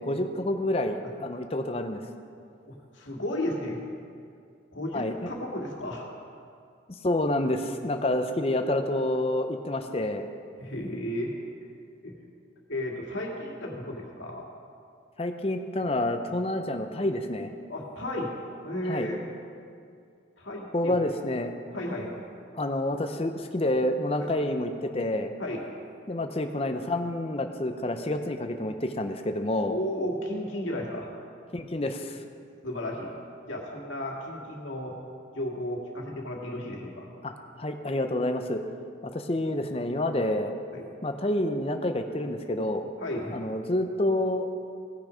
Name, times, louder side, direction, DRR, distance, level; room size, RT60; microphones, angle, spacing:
voice 1, 0.0-2.0 4.9-5.3 7.0-10.3 15.2-17.5 18.9-19.1 20.7-21.5 22.5-25.3 26.1-29.8 31.5-32.2 37.2-37.3 37.6-38.6 39.0-40.5 41.0-42.9 43.3-44.5, left 1 dB, 30° left, 6 dB, 0.6 m, -28 dB
voice 2, 2.7-3.8 4.7-6.1 10.6-11.4 12.0-12.1 12.7-14.4 17.7-18.3 18.6-19.2 20.4-21.1 21.7-22.1 25.4-25.6 29.6-31.1 32.6-33.1 33.5-35.0 35.3-37.1 40.7-40.8 43.0-43.4, left 1 dB, 85° left, -2 dB, 1.9 m, -33 dB
16.5 x 6.3 x 5.0 m, 2.3 s
head